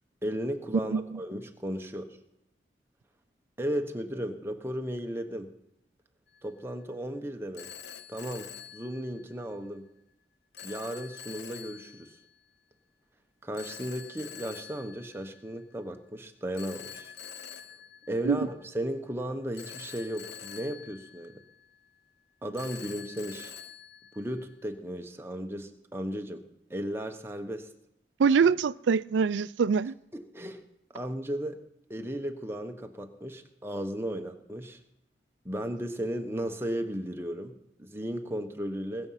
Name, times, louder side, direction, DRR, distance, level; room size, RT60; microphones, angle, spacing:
voice 1, 0.2-2.2 3.6-5.6 6.4-7.7 8.1-9.9 10.6-12.2 13.4-17.1 18.1-21.4 22.4-23.5 24.1-26.4 26.7-27.7 30.1-30.7 30.9-31.6 31.9-34.8 35.4-39.1, equal, 15° right, 1.0 m, -35 dB
Telephone, 6.3-6.6 7.5-9.6 10.5-12.3 13.5-15.7 16.5-18.9 19.5-21.9 22.5-24.8, left 8 dB, 70° left, 0.7 m, -46 dB
voice 2, 28.2-29.9, right 5 dB, 85° right, 0.4 m, -24 dB
21.0 x 7.0 x 5.7 m
head